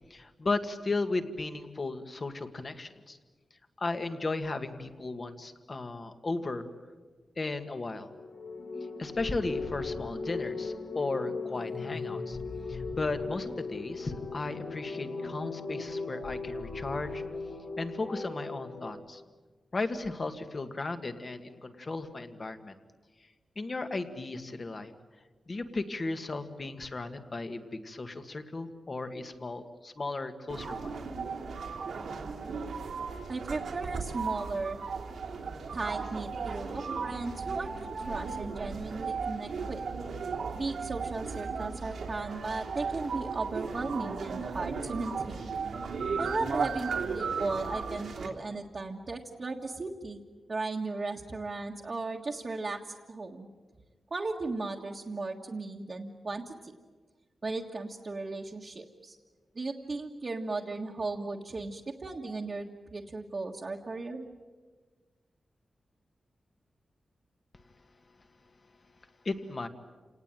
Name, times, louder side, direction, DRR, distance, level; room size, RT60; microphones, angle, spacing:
voice 1, 0.1-3.2 3.8-6.7 7.4-8.1 9.0-12.4 12.7-17.2 17.8-19.2 19.7-22.7 23.6-24.9 25.5-30.9 69.3-69.7, left 3 dB, 35° left, 8 dB, 1.9 m, -35 dB
sound 1, 8.1-18.9, left 4 dB, 70° left, 4.9 m, -38 dB
sound 2, 30.5-48.3, right 5 dB, 90° right, 3.0 m, -36 dB
voice 2, 33.3-34.8 35.7-39.8 40.5-45.4 46.2-50.2 50.5-53.5 54.1-56.7 57.4-59.2 59.6-64.3, right 3 dB, 40° right, -2 dB, 1.6 m, -36 dB
28.5 x 19.0 x 9.2 m, 1.4 s
wide cardioid pair, 125°, 0 cm